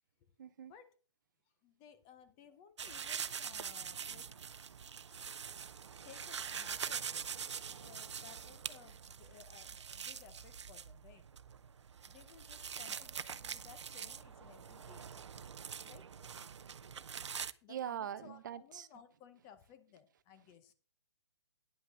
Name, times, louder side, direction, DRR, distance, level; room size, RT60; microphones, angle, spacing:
voice 1, 0.4-0.7 17.7-18.9, right 9 dB, 40° right, 0.6 m, -42 dB
voice 2, 1.6-4.3 5.1-5.2 6.0-7.3 7.6-11.2 12.1-15.5 15.8-16.0 17.6-20.7, left 8 dB, 20° left, 0.7 m, -59 dB
sound 1, 2.8-17.5, right 7 dB, 80° right, 0.6 m, -44 dB
9.9 x 5.8 x 6.0 m
hypercardioid pair, 160°, 15 cm